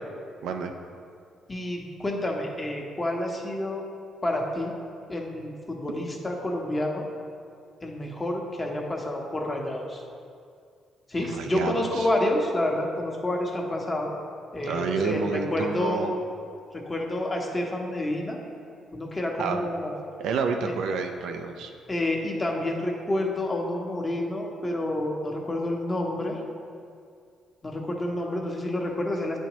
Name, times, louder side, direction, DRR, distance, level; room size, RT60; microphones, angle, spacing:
voice 1, 1.5-3.8 4.2-4.7 5.1-7.0 7.8-10.0 11.1-14.1 14.5-16.1 16.7-18.4 18.9-19.9 21.9-26.4 27.6-29.4, left 1 dB, 25° left, 0 dB, 1.0 m, -29 dB
voice 2, 11.3-12.1 14.6-16.1 19.4-19.7 20.2-21.7, right 5 dB, 85° right, 5 dB, 0.4 m, -29 dB
9.3 x 4.4 x 3.0 m, 2.3 s
cardioid pair, 90°, 0 cm